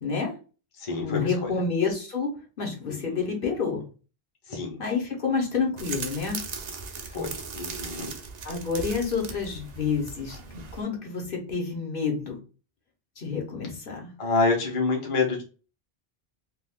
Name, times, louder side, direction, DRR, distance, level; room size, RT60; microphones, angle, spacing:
voice 1, 0.0-0.3 1.0-3.8 4.8-6.4 8.4-10.4 10.7-12.4 13.2-14.1, left 5 dB, 60° left, 0 dB, 1.1 m, -29 dB
voice 2, 0.8-1.6 2.9-3.3 4.5-4.8 7.1-8.1 14.2-15.4, left 3 dB, 35° left, 0 dB, 0.8 m, -28 dB
sound 1, 5.8-10.8, right 5 dB, 50° right, 0.6 m, -38 dB
2.6 x 2.4 x 3.5 m, 0.35 s
omnidirectional pair, 1.1 m